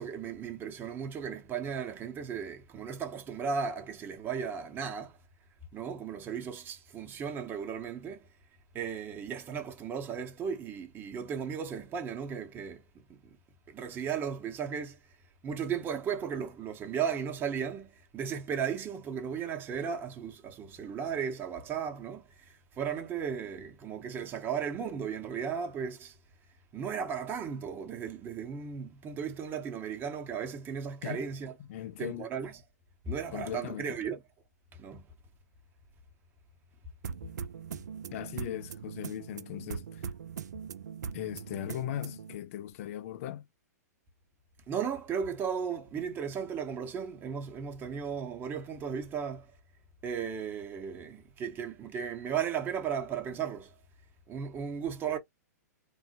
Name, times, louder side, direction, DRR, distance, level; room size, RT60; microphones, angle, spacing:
voice 1, 0.0-5.2 5.7-8.2 8.7-12.8 13.1-13.2 13.7-15.0 15.4-22.2 22.8-26.1 26.7-31.5 32.0-32.5 33.1-34.2 34.8-35.0 44.7-49.5 50.0-53.7 54.3-55.2, right 7 dB, 20° right, 0.8 m, -35 dB
voice 2, 31.6-32.3 33.3-34.0 38.1-40.1 41.1-43.5, left 12 dB, 50° left, 0.4 m, -38 dB
sound 1, 37.0-42.4, right 7 dB, 75° right, 0.4 m, -41 dB
3.1 x 2.1 x 2.8 m
hypercardioid pair, 120°, 9 cm